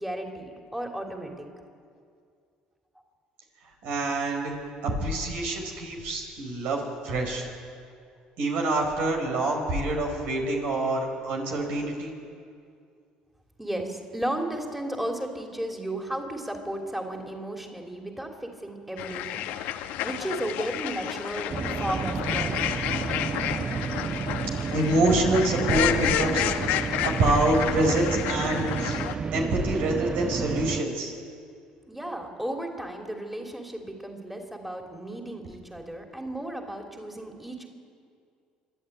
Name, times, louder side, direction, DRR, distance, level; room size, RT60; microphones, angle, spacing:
voice 1, 0.0-1.5 13.6-19.4 20.0-21.5 21.8-22.9 31.9-37.7, right 1 dB, 5° right, 2 dB, 3.2 m, -34 dB
voice 2, 3.8-4.5 4.8-7.5 8.4-12.1 24.7-26.7 27.0-29.0 29.3-31.1, right 2 dB, 70° right, 1 dB, 4.8 m, -26 dB
sound 1, 19.0-29.1, left 12 dB, 75° left, 1.0 m, -31 dB
sound 2, 21.5-30.8, right 5 dB, 35° right, 0.7 m, -31 dB
26.0 x 11.5 x 9.2 m, 2.3 s
hypercardioid pair, 65°, 3 cm